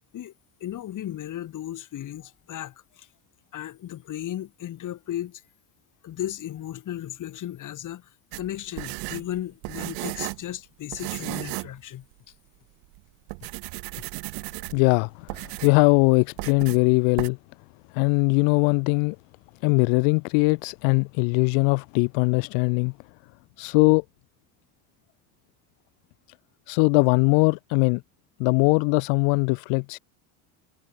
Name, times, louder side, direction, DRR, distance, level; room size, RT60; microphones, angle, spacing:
voice 1, 0.6-3.1 3.5-5.4 6.0-12.1, left 12 dB, 45° left, 3.7 m, -35 dB
sound 1, 8.3-10.5 10.9-11.8 12.1-12.2 12.8-13.0 13.3-14.9 15.3-15.8 16.4-16.8 17.2-17.3, right 34 dB, 80° right, 2.5 m, -35 dB
voice 2, 14.7-17.4 17.9-19.2 19.6-22.9 23.6-24.0 26.7-28.0 28.4-30.0, left 40 dB or more, 80° left, 0.6 m, -21 dB
cardioid pair, 125°, 42 cm